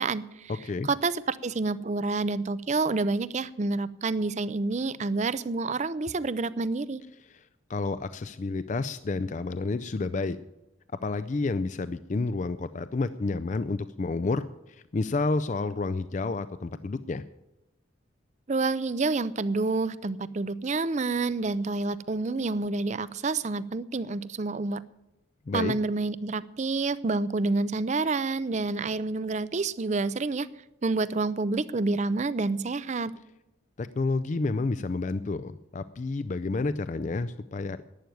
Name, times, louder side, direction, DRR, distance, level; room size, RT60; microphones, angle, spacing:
voice 1, 0.0-0.5 0.9-7.0 18.5-24.8 25.5-30.5 30.8-33.1, right 3 dB, 35° right, 17 dB, 0.5 m, -28 dB
voice 2, 7.7-10.4 10.9-17.2 25.5-25.7 33.8-37.8, left 3 dB, 35° left, 12 dB, 0.4 m, -30 dB
11.5 x 9.3 x 9.3 m, 0.93 s
head